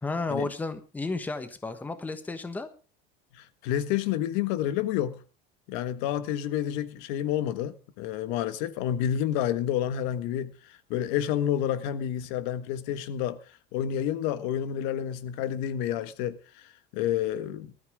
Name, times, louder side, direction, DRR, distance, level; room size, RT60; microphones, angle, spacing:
voice 1, 0.0-2.7, left 3 dB, 10° left, 1.3 m, -32 dB
voice 2, 3.3-5.2 5.7-13.4 13.7-16.4 16.9-17.7, left 10 dB, 65° left, 1.5 m, -29 dB
20.0 x 13.5 x 3.7 m
cardioid pair, 175°, 20 cm